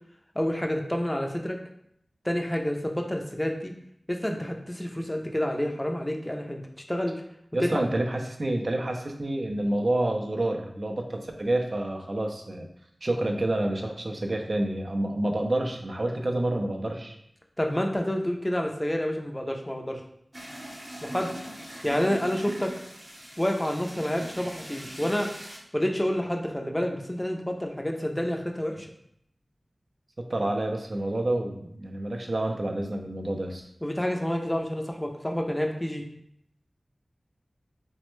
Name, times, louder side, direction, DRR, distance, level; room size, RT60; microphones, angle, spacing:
voice 1, 0.4-1.6 2.2-3.7 4.1-6.6 6.9-7.1 7.6-7.8 17.6-20.0 21.0-21.3 21.8-22.7 23.4-25.3 25.7-28.9 33.8-36.0, equal, 15° left, 2 dB, 0.4 m, -28 dB
voice 2, 7.5-12.7 13.0-17.2 30.2-33.7, right 1 dB, 55° right, 3 dB, 0.4 m, -28 dB
sound 1, 20.3-25.6, right 1 dB, 35° right, 0.8 m, -41 dB
3.2 x 2.1 x 3.0 m, 0.73 s
wide cardioid pair, 65°, 0 cm